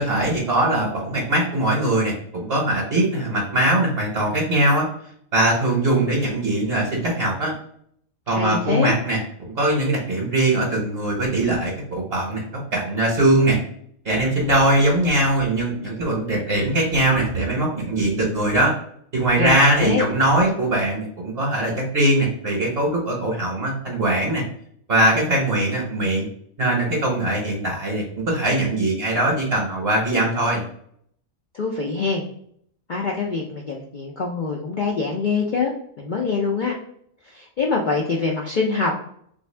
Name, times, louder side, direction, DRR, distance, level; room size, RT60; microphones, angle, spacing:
voice 1, 0.0-4.9 5.3-7.5 8.3-13.6 14.0-18.7 19.1-24.4 24.9-26.3 26.6-30.6, right 1 dB, 50° right, -2 dB, 1.0 m, -21 dB
voice 2, 8.3-8.9 19.4-20.0 31.5-32.2 32.9-36.7 37.2-38.9, left 4 dB, 65° left, -1 dB, 0.4 m, -24 dB
3.3 x 2.6 x 3.2 m, 0.65 s
omnidirectional pair, 1.4 m